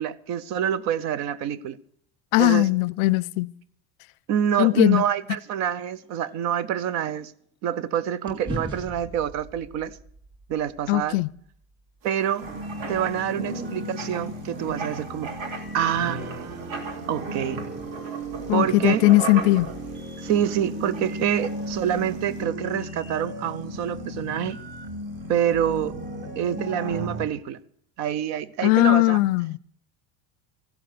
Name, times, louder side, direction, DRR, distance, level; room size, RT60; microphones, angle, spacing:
voice 1, 0.0-1.8 2.4-2.7 4.3-7.3 7.6-10.0 10.5-11.2 12.0-12.4 12.9-15.4 15.7-17.6 18.5-19.0 20.2-24.6 25.3-26.0 26.4-27.6 28.0-29.2, right 9 dB, 45° right, 0.7 m, -26 dB
voice 2, 2.3-3.5 4.6-5.0 10.9-11.3 18.5-19.7 28.6-29.6, left 20 dB, 80° left, 0.5 m, -19 dB
sound 1, 6.0-7.9 8.3-12.5, right 1 dB, 10° right, 3.7 m, -41 dB
Writing, 12.0-22.4, right 4 dB, 85° right, 3.2 m, -39 dB
sound 2, 12.4-27.2, right 1 dB, 30° right, 2.0 m, -35 dB
15.5 x 12.0 x 6.7 m
cardioid pair, 175°, 38 cm